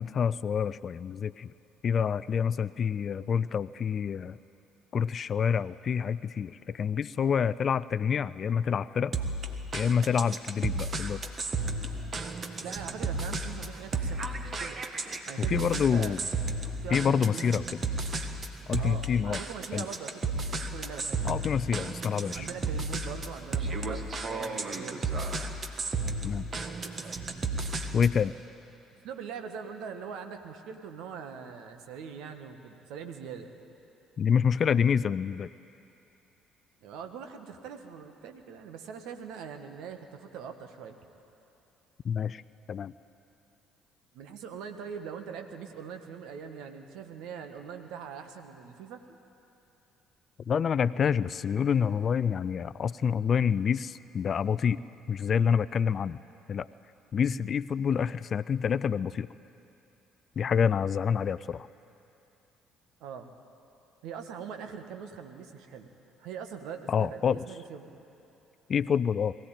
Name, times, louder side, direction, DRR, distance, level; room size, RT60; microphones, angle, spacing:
voice 1, 0.0-1.5 1.8-4.4 4.9-9.1 9.7-11.2 15.4-16.2 16.9-17.6 18.7-19.4 19.7-19.9 21.2-22.5 26.2-26.5 27.9-28.3 34.2-35.5 42.0-42.4 42.7-42.9 50.5-54.8 55.1-56.2 56.5-56.7 57.1-59.3 60.4-61.7 66.9-67.4 68.7-69.3, left 7 dB, 45° left, 18 dB, 0.4 m, -27 dB
sound 1, 9.1-28.2, right 3 dB, 40° right, 1.7 m, -33 dB
voice 2, 12.4-14.8 15.3-16.2 16.8-17.6 18.7-21.3 22.3-25.2 26.9-27.1 28.2-28.3 29.0-33.6 36.8-41.0 44.1-49.2 57.3-57.4 63.0-63.3 64.0-65.9 66.2-68.0, right 7 dB, 65° right, 6 dB, 1.5 m, -42 dB
21.5 x 15.5 x 9.0 m, 2.8 s
figure-of-eight pair, 50°, 0 cm